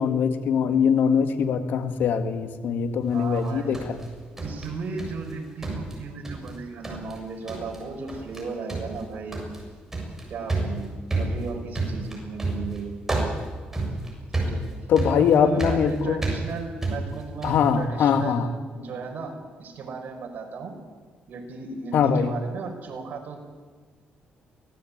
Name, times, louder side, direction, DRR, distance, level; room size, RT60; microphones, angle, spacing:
voice 1, 0.0-4.0 14.9-16.2 17.4-18.5 21.9-22.3, left 7 dB, 75° left, 8 dB, 1.9 m, -22 dB
voice 2, 3.1-3.8 4.4-9.4 10.3-12.9 14.3-14.6 15.1-20.7 21.3-23.4, right 4 dB, 60° right, 3 dB, 5.5 m, -35 dB
sound 1, 3.4-5.3 5.6-6.6 6.8-7.2 7.5-7.8 8.1-8.4 8.7-17.7, right 2 dB, 10° right, 7.2 m, -30 dB
24.5 x 18.5 x 8.8 m, 1.5 s
cardioid pair, 105°, 3 cm